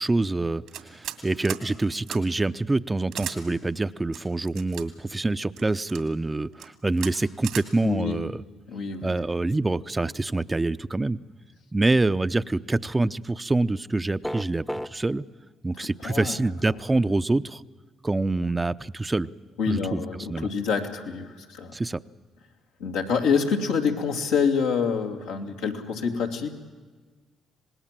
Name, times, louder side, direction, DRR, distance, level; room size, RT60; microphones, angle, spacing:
voice 1, 0.0-8.4 9.0-11.2 11.7-15.2 15.6-17.6 18.0-19.3 19.7-20.0 20.3-20.5 21.7-22.0, right 2 dB, 20° right, 12 dB, 0.7 m, -26 dB
sound 1, 0.7-1.2 1.4-1.6 2.1-2.2 3.1-3.4 4.1-4.8 5.6-6.0 6.5-6.7 7.0-7.1 7.4-7.7, right 11 dB, 80° right, 2.3 m, -35 dB
voice 2, 7.8-8.2 8.7-9.1 15.8-16.3 19.6-21.7 22.8-26.5, left 6 dB, 90° left, 0 dB, 2.5 m, -26 dB
sound 2, 14.2-14.9, equal, 5° left, 0.9 m, -31 dB
26.0 x 19.5 x 7.5 m, 1.4 s
hypercardioid pair, 50°, 0 cm